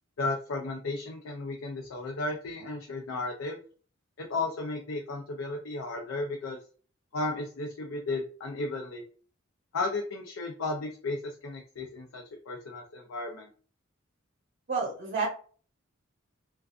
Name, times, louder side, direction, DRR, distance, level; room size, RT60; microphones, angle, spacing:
voice 1, 0.2-3.6 4.2-6.6 7.1-9.0 9.7-13.5, left 2 dB, 85° left, 2 dB, 0.5 m, -34 dB
voice 2, 14.7-15.3, right 4 dB, 45° right, -2 dB, 0.7 m, -29 dB
2.4 x 2.3 x 2.3 m, 0.41 s
head